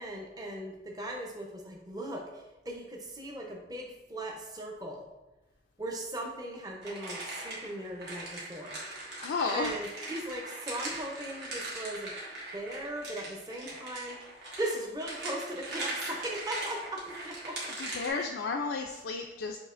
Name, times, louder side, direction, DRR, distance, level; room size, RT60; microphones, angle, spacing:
voice 1, 0.0-5.0 5.8-8.8 9.5-12.1 12.5-14.2 14.6-17.6 18.1-18.4, right 1 dB, 20° right, 0 dB, 0.6 m, -38 dB
sound 1, 6.8-18.1, right 2 dB, 75° right, 1.3 m, -40 dB
voice 2, 9.2-9.8 17.8-19.6, left 4 dB, 80° left, 2 dB, 0.3 m, -32 dB
6.2 x 2.8 x 2.5 m, 1.0 s
head